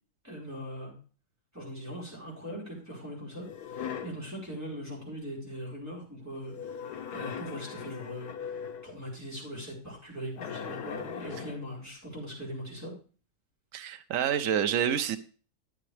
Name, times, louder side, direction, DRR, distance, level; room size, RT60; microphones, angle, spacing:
voice 1, 0.2-0.9 1.5-12.9, equal, 10° right, -5 dB, 4.7 m, -41 dB
sound 1, 3.4-4.3 6.4-9.0 10.4-11.7, left 7 dB, 85° left, 1.4 m, -39 dB
voice 2, 13.7-15.2, right 9 dB, 60° right, 10 dB, 1.1 m, -28 dB
12.0 x 8.2 x 3.3 m, 0.38 s
omnidirectional pair, 1.7 m